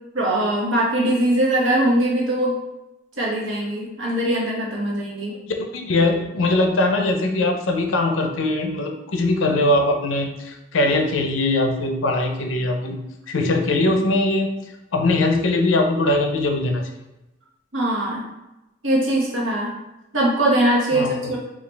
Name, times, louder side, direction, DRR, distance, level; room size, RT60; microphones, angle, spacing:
voice 1, 0.1-2.6 3.2-5.4 17.7-18.3 18.8-19.7 20.1-21.4, right 1 dB, 80° right, -4 dB, 1.2 m, -21 dB
voice 2, 5.7-13.0 13.3-14.5 14.9-16.9 20.9-21.2, left 2 dB, 80° left, 3 dB, 0.6 m, -21 dB
4.6 x 2.4 x 3.3 m, 0.97 s
head